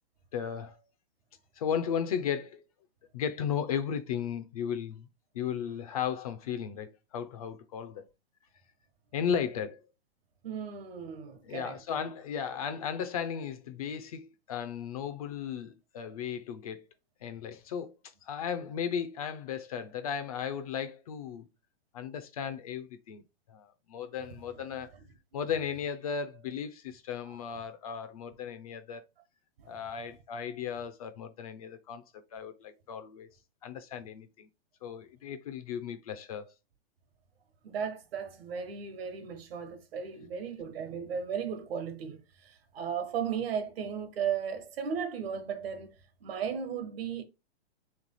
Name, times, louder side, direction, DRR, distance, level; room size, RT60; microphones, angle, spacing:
voice 1, 0.3-0.8 1.5-2.6 3.1-5.1 5.3-8.0 9.1-9.8 11.4-16.9 17.2-17.9 18.2-21.5 21.9-23.2 23.5-24.9 25.3-29.0 29.7-32.0 32.3-33.3 33.6-34.5 34.8-36.5, left 8 dB, 35° left, 0.4 m, -35 dB
voice 2, 10.4-11.8 29.6-29.7 37.6-46.0 46.2-47.2, right 7 dB, 60° right, 1.1 m, -35 dB
3.2 x 3.2 x 4.0 m
hypercardioid pair, 150°, 33 cm